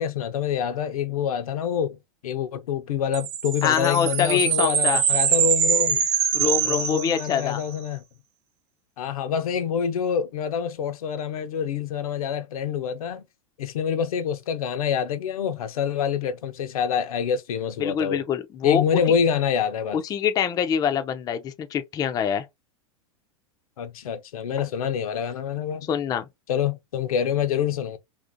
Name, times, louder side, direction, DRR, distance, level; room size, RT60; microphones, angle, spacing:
voice 1, 0.0-6.0 6.6-8.0 9.0-13.2 13.6-18.2 18.6-20.0 23.8-25.9 26.5-28.0, left 7 dB, 80° left, 0.6 m, -26 dB
sound 1, 3.1-7.7, right 8 dB, 40° right, 0.8 m, -24 dB
voice 2, 3.6-5.0 6.3-7.6 17.8-19.0 19.9-22.5 25.9-26.3, left 8 dB, 20° left, 0.4 m, -25 dB
2.9 x 2.5 x 2.6 m
hypercardioid pair, 120°, 18 cm